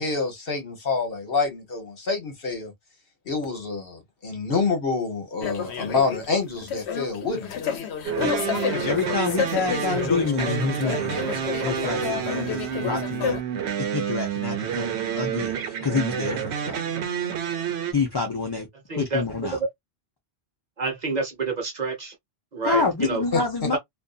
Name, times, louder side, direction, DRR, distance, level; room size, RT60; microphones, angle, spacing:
voice 1, 0.0-2.7 3.3-7.5 23.3-23.4, left 4 dB, 60° left, 1.1 m, -27 dB
sound 1, 5.4-13.4, left 7 dB, 85° left, 0.9 m, -30 dB
sound 2, 8.0-17.9, right 8 dB, 75° right, 0.9 m, -29 dB
voice 2, 8.8-11.2 11.6-13.3 13.9-14.9 15.2-16.8 17.9-18.7 19.0-19.6 22.6-23.8, left 4 dB, 30° left, 0.5 m, -27 dB
voice 3, 18.9-19.2 19.6-19.7 20.8-22.1 22.5-23.2 23.7-23.8, right 3 dB, 45° right, 0.8 m, -28 dB
2.5 x 2.5 x 2.2 m
omnidirectional pair, 1.1 m